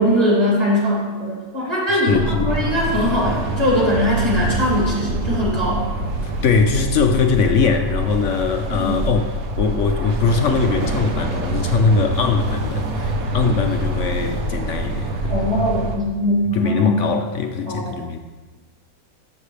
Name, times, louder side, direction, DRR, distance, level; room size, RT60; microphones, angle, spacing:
voice 1, 0.0-5.9 8.7-8.9 15.3-17.0 17.7-18.0, equal, 15° right, -6 dB, 3.1 m, -21 dB
voice 2, 1.6-2.5 6.2-9.3 9.6-15.4 16.5-18.2, left 5 dB, 75° left, 6 dB, 0.7 m, -21 dB
sound 1, 2.1-16.0, right 1 dB, 60° right, 1.3 m, -25 dB
13.0 x 7.2 x 3.3 m, 1.3 s
omnidirectional pair, 1.9 m